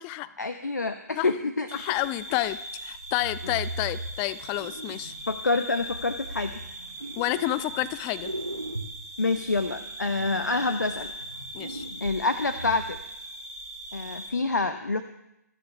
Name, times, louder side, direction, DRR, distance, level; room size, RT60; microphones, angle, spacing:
voice 1, 0.4-1.7 3.4-3.5 5.3-6.6 9.2-11.1 12.0-13.0 13.9-15.0, left 3 dB, 75° left, 9 dB, 1.0 m, -27 dB
voice 2, 1.7-5.1 7.2-8.3 11.5-11.9, left 16 dB, 20° left, 17 dB, 0.4 m, -30 dB
sound 1, 1.7-14.3, right 1 dB, 70° right, 7.2 m, -40 dB
sound 2, 2.9-5.4 5.9-7.9 8.2-13.0, right 1 dB, 90° right, 1.8 m, -39 dB
26.5 x 10.0 x 3.4 m, 0.85 s
figure-of-eight pair, 130°, 10 cm